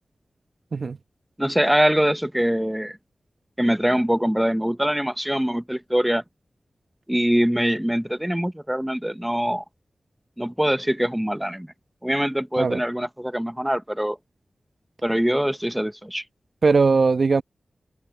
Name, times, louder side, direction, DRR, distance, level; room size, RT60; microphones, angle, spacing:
voice 1, 1.4-3.0 3.6-6.2 7.1-9.6 10.4-11.7 12.0-14.2 15.0-16.2, equal, 5° right, 1.0 m, -23 dB
voice 2, 16.6-17.4, right 4 dB, 70° right, 1.0 m, -19 dB
open air
wide cardioid pair, 65°, 0 cm